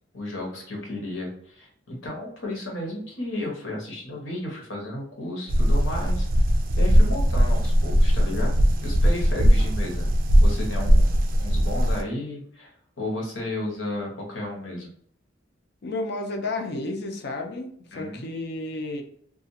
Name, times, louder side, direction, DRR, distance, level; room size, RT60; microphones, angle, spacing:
voice 1, 0.1-6.3 6.8-10.1 10.4-14.9 17.9-18.3, left 1 dB, 85° left, -1 dB, 1.1 m, -33 dB
sound 1, 5.5-12.0, equal, 50° right, 0.4 m, -20 dB
voice 2, 15.8-19.0, left 2 dB, 60° left, 3 dB, 0.5 m, -31 dB
2.4 x 2.3 x 2.7 m, 0.63 s
head